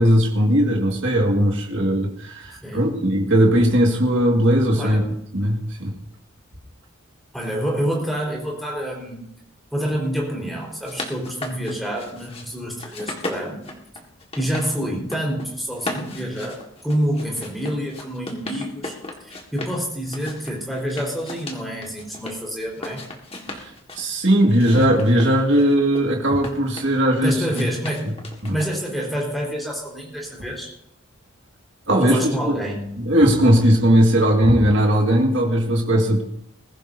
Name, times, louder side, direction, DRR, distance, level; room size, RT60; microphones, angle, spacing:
voice 1, 0.0-5.0 5.3-6.0 23.5-27.7 28.0-28.1 28.4-28.5 31.9-32.6 33.0-36.2, equal, 65° right, 0 dB, 2.1 m, -18 dB
voice 2, 4.7-5.1 7.3-9.2 9.7-13.7 14.4-18.9 19.2-23.1 27.2-28.1 28.5-30.7 32.0-32.9, equal, ahead, -2 dB, 4.5 m, -27 dB
sound 1, 10.6-12.5 12.8-14.7 15.0-15.5 15.8-19.8 20.1-22.4 22.7-24.0 24.5-27.0 27.5-29.0, left 2 dB, 30° left, 1.8 m, -36 dB
21.0 x 15.0 x 2.8 m, 0.75 s
head